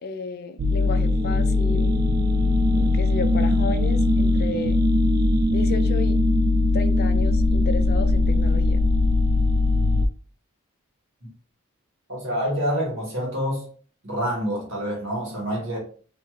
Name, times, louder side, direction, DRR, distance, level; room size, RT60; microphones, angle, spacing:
voice 1, 0.0-2.0 2.7-4.8 5.5-6.2 6.7-8.8, left 4 dB, 45° left, 0.4 m, -33 dB
sound 1, 0.6-10.1, left 2 dB, 45° right, 0.3 m, -20 dB
voice 2, 12.1-13.7 14.0-15.8, equal, 60° right, 1.5 m, -27 dB
3.1 x 2.8 x 2.3 m
head